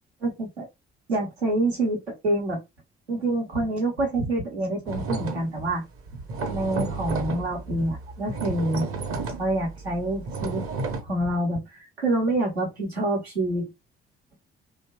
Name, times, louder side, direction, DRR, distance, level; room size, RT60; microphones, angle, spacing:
voice 1, 0.2-0.7 1.1-2.6 3.1-5.8 6.5-8.9 9.2-10.7 11.0-11.6 12.0-13.7, right 2 dB, 90° right, 0.8 m, -26 dB
sound 1, 4.9-5.7 6.0-11.0, right 3 dB, 45° right, 0.7 m, -32 dB
2.7 x 2.1 x 2.9 m
figure-of-eight pair, 45°, 31 cm